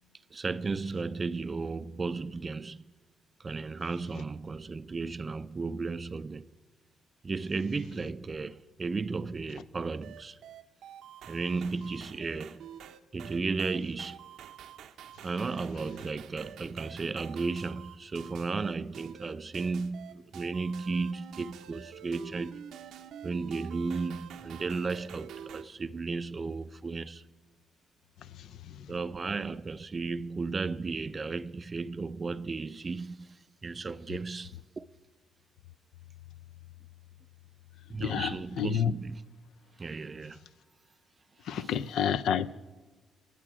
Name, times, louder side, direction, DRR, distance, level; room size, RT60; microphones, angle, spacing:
voice 1, 0.3-2.8 3.4-6.4 7.2-10.4 11.3-12.7 13.1-14.2 15.2-22.7 23.2-27.3 28.9-33.4 33.6-34.8 37.9-39.2 39.8-40.4 41.5-41.7, right 4 dB, 30° right, 0.4 m, -34 dB
sound 1, 10.0-25.6, right 9 dB, 80° right, 0.7 m, -47 dB
voice 2, 28.3-28.9 38.0-38.9 41.4-42.5, left 8 dB, 75° left, 0.4 m, -30 dB
21.0 x 7.5 x 4.9 m
cardioid pair, 90°, 0 cm